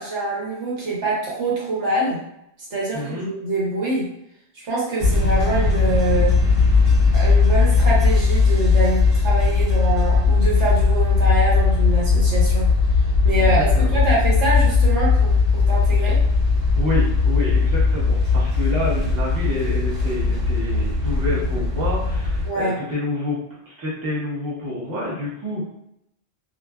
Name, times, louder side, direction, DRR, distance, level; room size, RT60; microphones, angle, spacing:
voice 1, 0.0-2.2 2.7-4.1 4.6-6.4 7.1-12.7 13.2-13.6 13.9-16.2 22.4-22.8, right 2 dB, 80° right, -5 dB, 1.2 m, -24 dB
voice 2, 2.9-3.3 13.4-14.0 16.8-23.4 23.7-25.6, left 1 dB, 20° right, -7 dB, 0.8 m, -28 dB
sound 1, 5.0-22.5, left 4 dB, 60° right, 1.2 m, -18 dB
2.6 x 2.4 x 2.3 m, 0.78 s
omnidirectional pair, 1.2 m